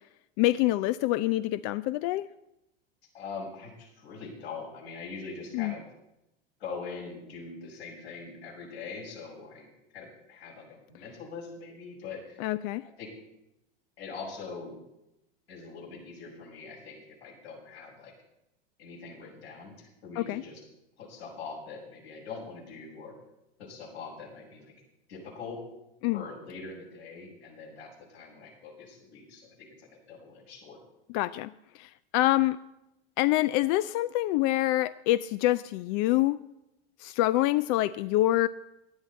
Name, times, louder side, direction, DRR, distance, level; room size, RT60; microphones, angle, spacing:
voice 1, 0.4-2.3 5.5-5.7 12.4-12.8 20.2-20.4 26.0-26.2 31.1-32.6 33.2-36.4 37.0-38.5, left 16 dB, 50° left, 15 dB, 0.5 m, -26 dB
voice 2, 3.1-5.8 6.6-9.7 9.9-12.4 13.0-13.1 14.0-14.8 15.5-18.1 18.8-20.6 21.0-23.1 23.6-24.7 25.1-25.6 26.1-30.8, left 4 dB, 80° left, -3 dB, 6.7 m, -43 dB
18.5 x 11.5 x 4.3 m, 0.89 s
hypercardioid pair, 95°, 31 cm